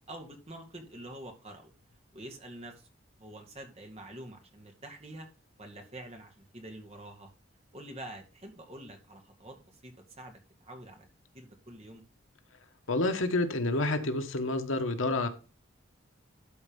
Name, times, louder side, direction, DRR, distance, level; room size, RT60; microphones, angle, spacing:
voice 1, 0.0-1.7 2.1-2.9 3.2-5.3 5.6-7.3 7.7-11.1 11.3-12.0, right 1 dB, 30° right, 2.2 m, -46 dB
voice 2, 12.9-15.3, left 2 dB, 80° left, 1.4 m, -29 dB
12.0 x 4.4 x 5.3 m
head